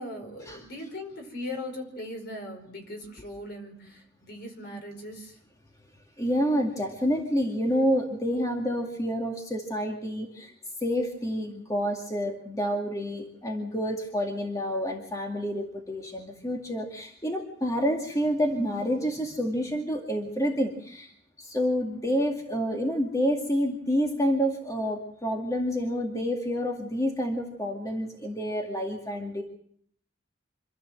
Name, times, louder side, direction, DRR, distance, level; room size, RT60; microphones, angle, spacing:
voice 1, 0.0-5.4, left 1 dB, 55° left, 4 dB, 5.1 m, -39 dB
voice 2, 6.2-10.5 10.8-21.1 21.4-29.4, equal, 20° left, 1 dB, 2.1 m, -28 dB
26.5 x 13.5 x 7.6 m, 0.64 s
head